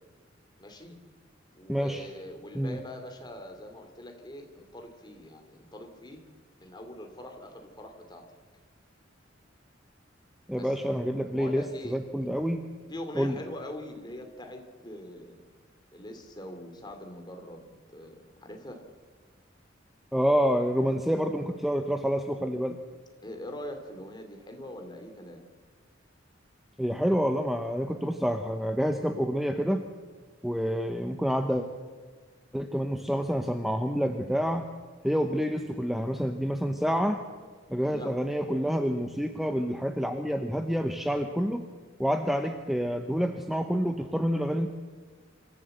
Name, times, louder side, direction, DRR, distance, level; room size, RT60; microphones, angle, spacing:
voice 1, 0.6-1.0 1.5-6.3 6.6-8.3 10.6-10.7 11.3-12.0 12.9-15.4 15.9-18.8 23.2-25.4 37.8-38.2, left 1 dB, 25° left, 4 dB, 2.8 m, -43 dB
voice 2, 1.7-2.1 2.5-2.8 10.5-12.6 13.2-13.4 20.1-22.8 26.8-29.8 30.4-31.7 32.5-34.7 35.0-37.2 37.7-41.6 42.0-44.7, equal, ahead, 5 dB, 0.9 m, -28 dB
26.0 x 14.5 x 7.9 m, 1.5 s
head